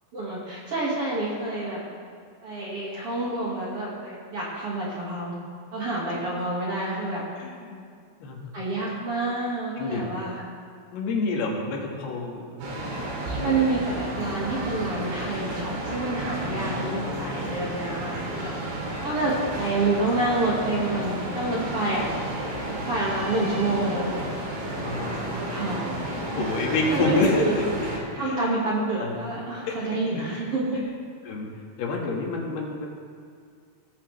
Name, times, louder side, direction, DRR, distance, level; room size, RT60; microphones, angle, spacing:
voice 1, 0.1-1.8 2.4-5.4 5.7-7.3 8.5-10.4 13.3-18.5 19.0-22.1 22.7-24.3 24.9-26.0 26.2-26.5 26.9-27.6 28.1-30.8, right 2 dB, 45° right, -6 dB, 2.2 m, -28 dB
voice 2, 7.4-7.9 8.2-8.5 9.8-10.0 10.9-12.4 13.3-13.6 16.5-17.4 22.7-22.9 24.8-25.2 26.3-27.9 28.2-28.7 29.0-29.2 29.7-30.2 30.8-30.9 31.3-31.5 31.8-32.9, left 3 dB, 80° left, -1 dB, 3.7 m, -29 dB
sound 1, 12.6-28.0, right 1 dB, 90° right, 4.5 m, -32 dB
19.0 x 10.5 x 3.2 m, 2.2 s
omnidirectional pair, 4.6 m